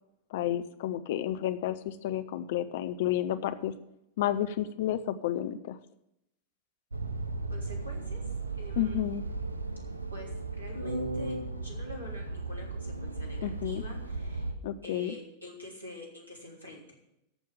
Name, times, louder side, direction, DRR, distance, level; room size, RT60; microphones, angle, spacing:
voice 1, 0.3-3.7 4.2-5.8 8.8-9.2 13.4-13.8 14.6-15.1, left 12 dB, 55° left, 11 dB, 0.7 m, -31 dB
sound 1, 6.9-14.5, right 3 dB, 80° right, 0.8 m, -36 dB
voice 2, 7.5-8.2 8.6-9.0 10.1-14.5 14.8-17.0, left 1 dB, 90° left, -3 dB, 3.6 m, -46 dB
14.0 x 5.6 x 8.7 m, 0.82 s
figure-of-eight pair, 90°, 0 cm